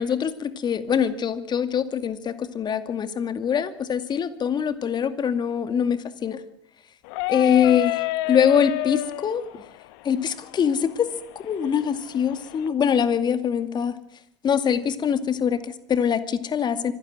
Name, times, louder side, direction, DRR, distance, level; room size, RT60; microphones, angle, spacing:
voice 1, 0.0-6.4 7.3-9.4 10.0-11.1 11.4-14.0 14.4-16.9, left 8 dB, 30° left, 11 dB, 2.3 m, -23 dB
sound 1, 7.0-12.7, left 17 dB, 60° left, 1.2 m, -31 dB
25.5 x 16.5 x 7.9 m, 0.70 s
hypercardioid pair, 85°, 14 cm